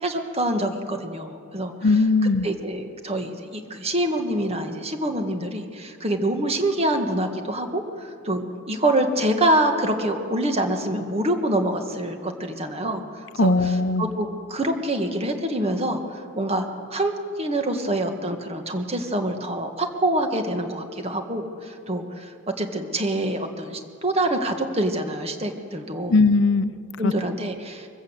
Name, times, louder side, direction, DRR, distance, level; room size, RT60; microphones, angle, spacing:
voice 1, 0.0-1.7 2.4-13.0 13.4-13.5 14.0-16.6 16.9-17.1 17.4-22.3 22.6-26.2 27.0-27.9, right 1 dB, 30° right, 5 dB, 1.8 m, -25 dB
voice 2, 1.8-2.5 13.4-14.1 26.1-26.7 27.0-27.1, left 3 dB, 60° left, 13 dB, 0.7 m, -19 dB
23.0 x 15.5 x 8.2 m, 2.3 s
head